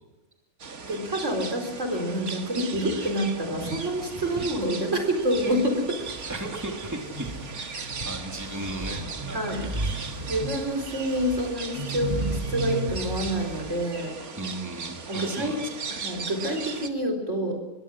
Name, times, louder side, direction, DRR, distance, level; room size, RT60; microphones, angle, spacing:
sound 1, 0.6-16.9, right 4 dB, 90° right, 2.3 m, -38 dB
voice 1, 0.8-6.0 7.7-7.9 9.3-9.7 10.3-14.1 15.1-15.6 15.9-17.6, equal, 55° right, 3 dB, 4.5 m, -28 dB
sound 2, 3.3-5.6 5.9-13.8, right 2 dB, 25° right, 5.3 m, -35 dB
voice 2, 6.3-10.0 14.4-15.7, right 1 dB, 10° right, 1 dB, 3.1 m, -37 dB
24.0 x 21.5 x 6.3 m, 1.1 s
omnidirectional pair, 1.5 m